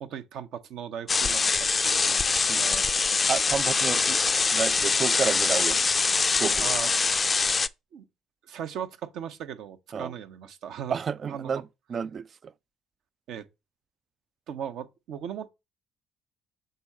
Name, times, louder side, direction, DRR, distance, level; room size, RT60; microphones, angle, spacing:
voice 1, 0.0-3.2 6.6-6.9 7.9-8.1 8.4-11.0 11.3-11.5 13.3-13.5 14.5-15.5, right 8 dB, 60° right, 0.8 m, -38 dB
sound 1, 1.1-7.7, left 4 dB, 30° left, 0.4 m, -24 dB
voice 2, 3.3-4.2 4.5-5.8 6.2-6.7 9.9-10.1 10.9-11.6 11.9-12.5, right 6 dB, 45° right, 0.4 m, -30 dB
6.8 x 3.8 x 4.2 m
hypercardioid pair, 50°, 0 cm